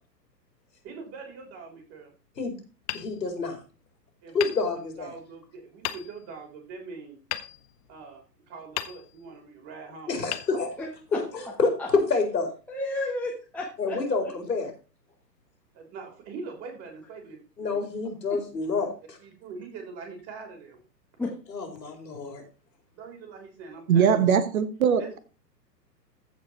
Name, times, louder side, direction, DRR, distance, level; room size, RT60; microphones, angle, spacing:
voice 1, 0.8-2.1 4.2-4.5 5.0-7.2 7.9-10.2 10.5-10.6 11.2-11.3 15.7-17.8 19.2-20.8 22.9-24.2 25.0-25.1, right 4 dB, 30° right, 3.7 m, -43 dB
Hammer, 2.8-3.9 4.4-5.3 5.8-6.5 7.3-8.3 8.7-9.5 10.3-11.2, left 14 dB, 25° left, 0.6 m, -37 dB
voice 2, 2.9-3.6 4.3-5.1 10.1-10.7 11.1-12.5 13.8-14.7 17.6-19.2 21.5-22.4, left 4 dB, 80° left, 4.0 m, -28 dB
voice 3, 10.8-11.2 11.8-11.9 12.7-14.0 18.3-18.4 21.2-21.4, left 2 dB, 5° left, 1.3 m, -32 dB
voice 4, 23.9-25.2, right 7 dB, 55° right, 1.3 m, -21 dB
14.5 x 5.0 x 4.3 m
figure-of-eight pair, 120°, 50 cm